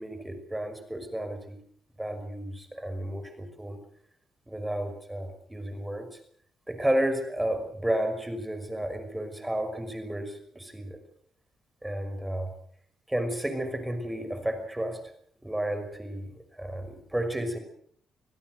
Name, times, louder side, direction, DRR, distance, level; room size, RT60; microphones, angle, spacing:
voice 1, 0.0-1.6 2.0-3.8 4.5-6.2 6.7-11.0 11.8-12.5 13.1-15.0 15.4-17.6, right 1 dB, 10° right, 8 dB, 5.7 m, -32 dB
26.0 x 17.0 x 6.6 m, 0.62 s
cardioid pair, 90°, 0 cm